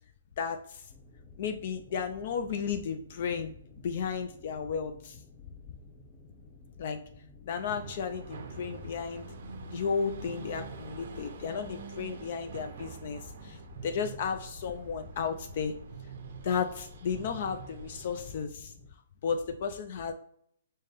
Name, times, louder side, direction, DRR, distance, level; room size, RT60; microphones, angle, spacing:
voice 1, 0.4-0.9 1.4-3.5 3.8-5.2 6.8-7.0 7.4-9.3 9.7-15.8 16.4-18.7 19.2-20.1, left 6 dB, 50° left, 6 dB, 0.3 m, -34 dB
sound 1, 0.9-18.9, left 3 dB, 10° left, 0.7 m, -54 dB
sound 2, 7.5-18.5, right 4 dB, 60° right, 0.5 m, -45 dB
5.4 x 2.1 x 3.3 m, 0.67 s
hypercardioid pair, 145°, 0 cm